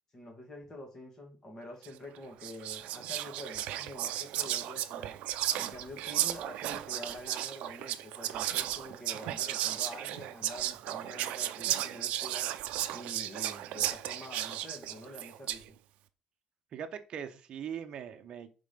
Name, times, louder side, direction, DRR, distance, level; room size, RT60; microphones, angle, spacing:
voice 1, 0.1-5.2 5.6-12.5 12.9-15.7, left 1 dB, 25° left, 2 dB, 1.8 m, -47 dB
Whispering, 1.8-2.0 2.4-15.7, right 13 dB, 80° right, 0.5 m, -35 dB
voice 2, 16.7-18.5, right 8 dB, 45° right, 7 dB, 0.9 m, -40 dB
5.1 x 3.8 x 5.2 m, 0.33 s
cardioid pair, 160°, 2 cm